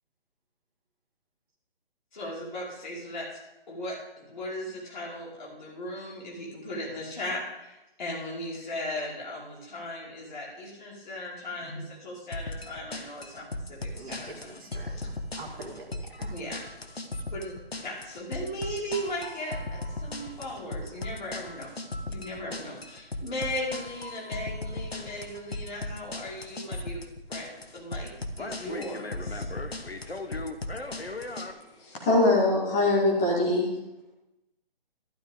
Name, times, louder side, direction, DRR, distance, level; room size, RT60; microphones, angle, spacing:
voice 1, 2.1-3.3 3.7-14.6 14.8-15.1 16.3-16.6 17.3-17.5 17.8-21.7 22.1-27.0 27.3-28.1 28.4-29.4, left 1 dB, 50° left, -5 dB, 5.1 m, -37 dB
sound 1, 12.3-31.5, left 2 dB, 90° left, 1.2 m, -37 dB
voice 2, 13.9-16.3, right 3 dB, 15° right, -5 dB, 2.0 m, -44 dB
voice 3, 32.0-33.7, left 2 dB, 5° left, -4 dB, 0.5 m, -22 dB
12.0 x 11.5 x 3.7 m, 0.95 s
figure-of-eight pair, 145°, 30 cm